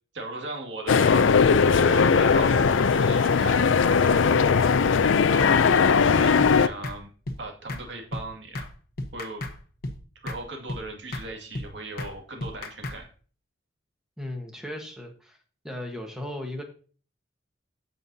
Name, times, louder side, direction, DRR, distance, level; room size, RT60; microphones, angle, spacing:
voice 1, 0.1-1.3 1.7-4.3 5.3-5.6 5.8-7.1 7.4-8.6 9.1-9.4 10.2-13.1, right 2 dB, 65° right, 2 dB, 2.1 m, -37 dB
sound 1, 0.9-6.7, left 5 dB, 75° left, 0.4 m, -19 dB
sound 2, 6.4-6.5 6.8-7.0 7.3-7.4 7.7-7.8 8.1-8.3 8.5-8.7 9.0-9.6 9.8-10.0 10.3-10.4 10.7-10.8 11.1-11.3 11.5-11.7 12.0-12.1 12.4-13.0, left 1 dB, 50° left, 1.0 m, -33 dB
voice 2, 14.2-15.4 15.6-16.6, left 1 dB, 5° right, 2 dB, 1.3 m, -36 dB
14.5 x 5.4 x 2.7 m, 0.40 s
head